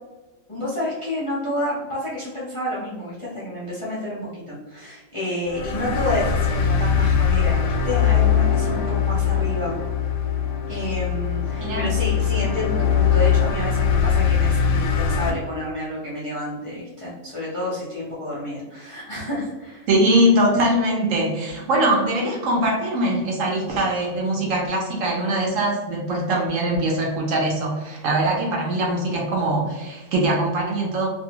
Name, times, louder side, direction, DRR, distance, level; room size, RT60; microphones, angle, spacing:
voice 1, 0.5-9.7 10.7-19.9, left 1 dB, 45° left, -9 dB, 0.4 m, -29 dB
sound 1, 5.5-15.3, left 7 dB, 75° left, 1.0 m, -21 dB
voice 2, 19.9-31.1, right 1 dB, 70° right, -1 dB, 0.9 m, -22 dB
2.6 x 2.4 x 2.9 m, 1.1 s
omnidirectional pair, 1.6 m